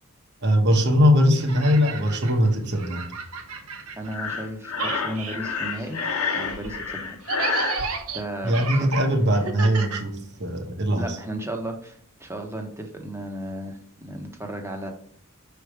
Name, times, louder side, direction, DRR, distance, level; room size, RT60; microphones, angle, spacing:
voice 1, 0.4-3.0 8.4-11.2, equal, 50° right, 1.1 m, -21 dB
sound 1, 1.3-4.4 4.7-10.7, right 4 dB, 80° right, 0.9 m, -34 dB
voice 2, 4.0-6.0 6.4-7.2 8.1-8.9 10.9-14.9, right 1 dB, 10° right, 0.9 m, -34 dB
Breathing, 4.1-7.8, left 4 dB, 80° left, 0.8 m, -29 dB
6.1 x 3.4 x 4.7 m
head